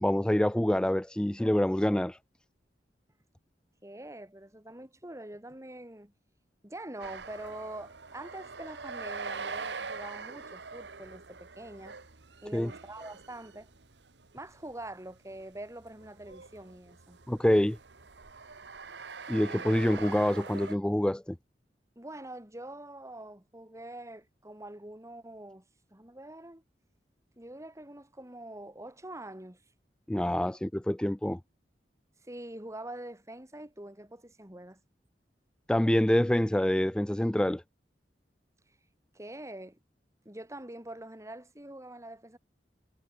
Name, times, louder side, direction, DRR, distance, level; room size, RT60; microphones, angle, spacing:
voice 1, 0.0-2.2 12.5-12.7 17.3-17.8 19.3-21.4 30.1-31.4 35.7-37.6, left 1 dB, 5° left, 0.3 m, -26 dB
voice 2, 3.8-6.1 6.6-12.0 12.4-13.7 14.3-17.2 22.0-25.6 25.9-26.6 27.4-29.6 32.2-34.8 39.1-39.8 40.3-42.4, right 1 dB, 15° right, 3.8 m, -44 dB
sound 1, 7.0-20.8, right 4 dB, 85° right, 1.6 m, -43 dB
head